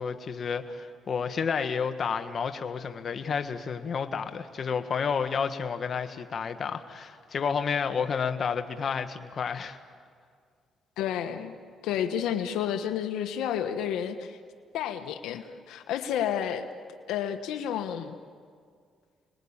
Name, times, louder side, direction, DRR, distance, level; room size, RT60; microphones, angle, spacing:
voice 1, 0.0-9.8, left 6 dB, 50° left, 8 dB, 1.5 m, -30 dB
voice 2, 11.0-11.5 11.8-14.4 14.7-16.7 17.1-18.1, left 9 dB, 90° left, 8 dB, 1.2 m, -30 dB
29.5 x 20.5 x 8.8 m, 2.1 s
cardioid pair, 90°, 0 cm